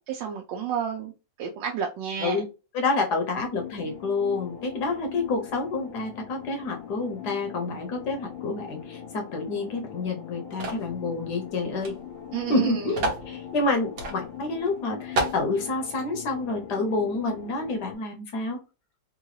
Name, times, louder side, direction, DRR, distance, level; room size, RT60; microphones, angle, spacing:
voice 1, 0.1-1.1 1.4-2.4 12.3-12.9, right 8 dB, 85° right, 1.3 m, -30 dB
voice 2, 2.7-12.0 12.5-13.0 13.3-18.6, left 3 dB, 70° left, 1.3 m, -28 dB
sound 1, 3.5-17.9, left 9 dB, 90° left, 1.6 m, -41 dB
sound 2, 10.6-10.9 11.8-11.9 12.2-12.3 13.0-13.3 14.0-14.2 14.6-14.7 15.2-15.4, right 2 dB, 55° right, 1.2 m, -28 dB
3.8 x 2.3 x 3.0 m
omnidirectional pair, 1.9 m